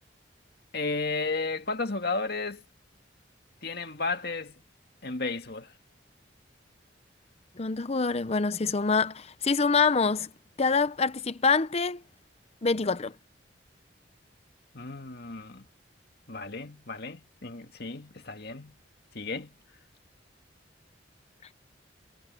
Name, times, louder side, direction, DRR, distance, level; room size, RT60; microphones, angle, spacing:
voice 1, 0.7-2.6 3.6-4.5 5.0-5.7 14.7-15.7 16.3-18.8 19.1-19.5, left 3 dB, 60° left, 2.2 m, -33 dB
voice 2, 7.6-10.3 10.6-12.0 12.6-13.1, left 4 dB, 35° left, 0.7 m, -25 dB
head